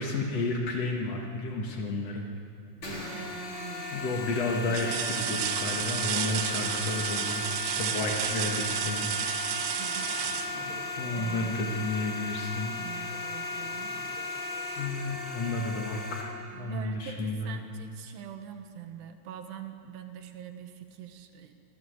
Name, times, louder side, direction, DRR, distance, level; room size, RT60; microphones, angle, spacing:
voice 1, 0.0-2.2 3.9-9.1 10.9-12.7 14.7-17.6, left 2 dB, 75° left, 0 dB, 1.4 m, -32 dB
sound 1, 2.8-16.2, left 3 dB, 25° left, 4.2 m, -36 dB
voice 2, 2.8-4.0 9.8-10.2 11.1-11.6 12.8-14.0 16.5-21.5, right 9 dB, 70° right, 6 dB, 2.9 m, -44 dB
sound 2, 3.0-3.4 4.0-4.1 4.7-11.4 13.2-13.3 13.8-14.8 16.1-16.2, right 12 dB, 85° right, 3.4 m, -33 dB
27.0 x 16.5 x 8.1 m, 2.5 s
omnidirectional pair, 5.7 m